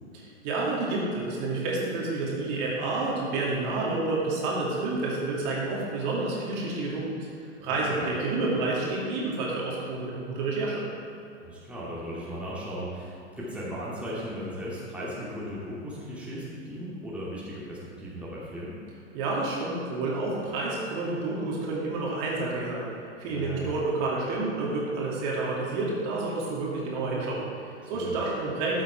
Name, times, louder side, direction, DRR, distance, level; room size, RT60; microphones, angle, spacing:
voice 1, 0.4-10.8 19.1-22.9 23.2-28.8, right 3 dB, 40° right, -4 dB, 2.7 m, -29 dB
voice 2, 7.7-8.1 11.4-18.8 23.3-23.7 27.9-28.2, equal, 5° right, -7 dB, 2.5 m, -37 dB
13.5 x 7.9 x 4.7 m, 2.8 s
figure-of-eight pair, 95°, 35 cm